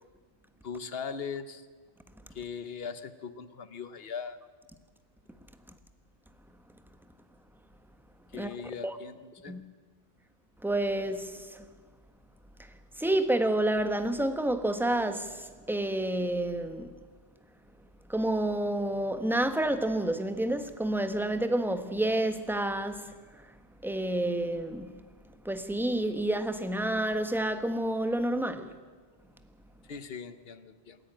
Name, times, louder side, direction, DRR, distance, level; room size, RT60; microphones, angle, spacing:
voice 1, 0.6-1.7 2.3-4.4 8.3-9.6 29.9-31.0, left 6 dB, 60° left, 1.2 m, -39 dB
voice 2, 10.6-11.6 13.0-16.9 18.1-23.4 23.8-25.0 25.4-28.8, right 1 dB, ahead, 1.0 m, -29 dB
26.5 x 11.0 x 8.9 m
omnidirectional pair, 1.2 m